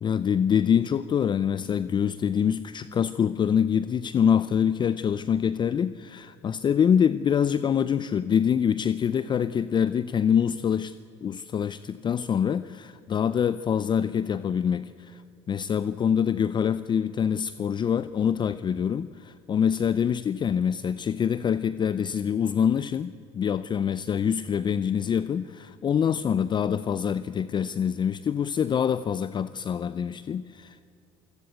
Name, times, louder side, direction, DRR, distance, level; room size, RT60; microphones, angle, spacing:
voice 1, 0.0-10.9 11.2-15.2 15.5-30.9, left 8 dB, 35° left, 15 dB, 0.6 m, -25 dB
28.5 x 16.5 x 8.1 m, 2.7 s
supercardioid pair, 95°, 14 cm